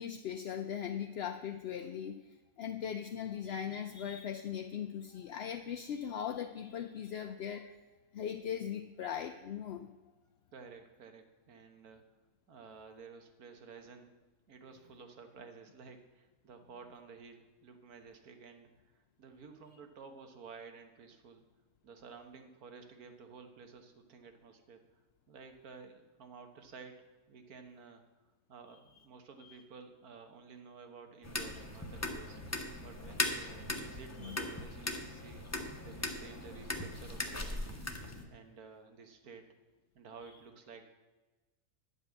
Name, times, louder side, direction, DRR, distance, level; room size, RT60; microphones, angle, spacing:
voice 1, 0.0-7.7 8.1-9.9 29.4-29.6 34.2-34.5, left 8 dB, 60° left, 5 dB, 0.7 m, -39 dB
voice 2, 10.5-12.0 12.5-14.1 14.5-21.4 21.8-25.0 25.3-27.0 27.3-28.0 28.5-32.4 32.8-35.4 35.8-37.8 38.3-39.4 39.9-40.8, right 5 dB, 90° right, 6 dB, 1.7 m, -53 dB
sound 1, 31.2-38.2, left 2 dB, 15° left, 0.8 m, -39 dB
10.5 x 5.6 x 8.1 m, 1.2 s
omnidirectional pair, 1.5 m